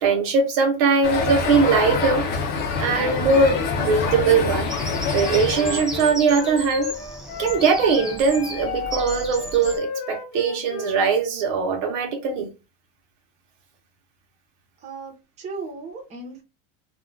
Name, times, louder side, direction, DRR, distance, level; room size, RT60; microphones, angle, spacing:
voice 1, 0.0-2.3 2.8-4.7 5.1-6.9 7.4-12.5, right 4 dB, 60° right, 0.9 m, -21 dB
sound 1, 1.0-6.1, left 4 dB, 35° left, 0.7 m, -26 dB
Bird vocalization bird call bird song, 4.6-9.8, right 1 dB, ahead, 0.4 m, -35 dB
Wind instrument woodwind instrument, 5.5-11.0, left 5 dB, 65° left, 0.8 m, -33 dB
voice 2, 14.8-16.4, right 3 dB, 20° right, 0.9 m, -36 dB
2.5 x 2.4 x 3.2 m
supercardioid pair, 155°, 29 cm